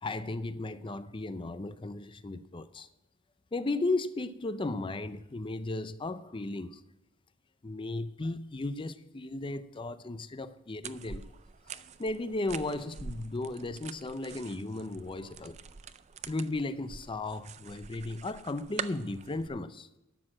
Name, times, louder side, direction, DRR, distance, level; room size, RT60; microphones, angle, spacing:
voice 1, 0.0-2.9 3.5-6.8 7.6-11.2 11.7-15.6 16.3-19.9, left 2 dB, 25° left, 0.5 m, -35 dB
sound 1, 10.8-19.5, right 6 dB, 35° right, 0.4 m, -45 dB
12.5 x 6.5 x 7.4 m
head